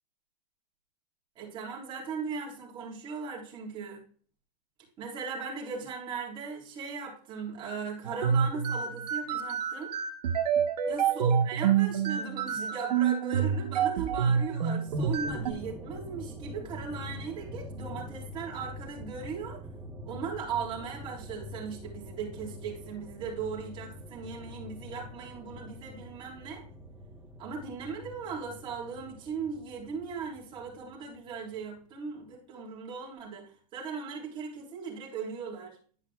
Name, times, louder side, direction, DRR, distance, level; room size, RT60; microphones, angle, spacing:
voice 1, 1.4-4.0 5.0-9.9 10.9-19.6 20.0-26.6 27.4-35.8, right 5 dB, 25° right, -3 dB, 3.8 m, -38 dB
sound 1, 8.0-15.5, right 7 dB, 75° right, 1.3 m, -27 dB
sound 2, 14.9-31.6, left 1 dB, 5° right, 1.1 m, -45 dB
11.5 x 5.7 x 2.3 m, 0.42 s
supercardioid pair, 155°, 21 cm